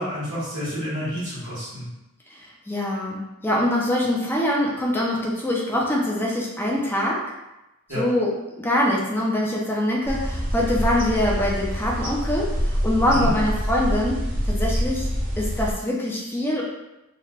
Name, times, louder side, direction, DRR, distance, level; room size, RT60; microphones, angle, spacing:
voice 1, 0.0-1.9 7.9-8.0 13.1-13.3, equal, 75° right, -10 dB, 1.1 m, -29 dB
voice 2, 2.3-7.2 7.9-15.1 15.4-16.6, left 1 dB, 10° left, -3 dB, 0.5 m, -24 dB
sound 1, 10.1-15.7, equal, 40° right, 0.6 m, -26 dB
2.9 x 2.2 x 2.9 m, 0.96 s
head